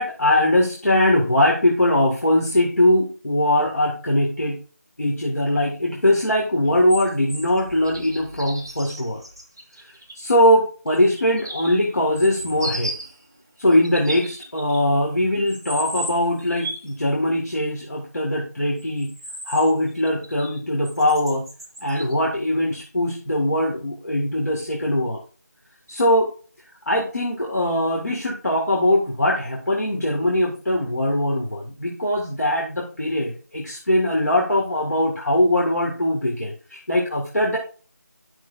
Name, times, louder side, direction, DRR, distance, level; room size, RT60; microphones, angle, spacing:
voice 1, 0.0-4.6 5.0-9.2 10.1-12.9 13.6-19.1 19.5-21.5 21.8-25.2 25.9-26.3 26.9-37.6, left 1 dB, 65° left, -2 dB, 2.2 m, -21 dB
sound 1, 6.6-10.2 10.9-13.2 13.7-15.1 15.5-16.9 18.8-20.6 20.9-22.2 22.9-23.0, right 1 dB, 15° right, 0.5 m, -36 dB
11.5 x 6.0 x 2.7 m, 0.39 s
figure-of-eight pair, 175°, 9 cm